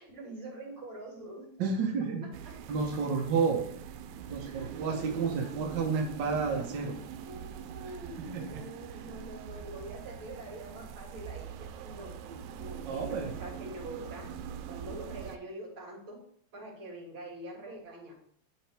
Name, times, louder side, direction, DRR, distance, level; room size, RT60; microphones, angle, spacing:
voice 1, 0.0-1.5 2.5-3.2 4.4-4.8 5.1-5.5 7.2-12.2 12.6-14.3 14.7-16.2 16.5-18.1, right 1 dB, 45° right, -4 dB, 3.5 m, -45 dB
voice 2, 1.6-2.3 2.7-3.6 4.2-7.0 8.2-8.6 12.3-12.4 12.9-13.3, right 5 dB, 65° right, 1 dB, 1.1 m, -31 dB
sound 1, 2.3-15.4, right 8 dB, 85° right, 2.0 m, -43 dB
11.5 x 4.0 x 3.4 m, 0.62 s
omnidirectional pair, 3.3 m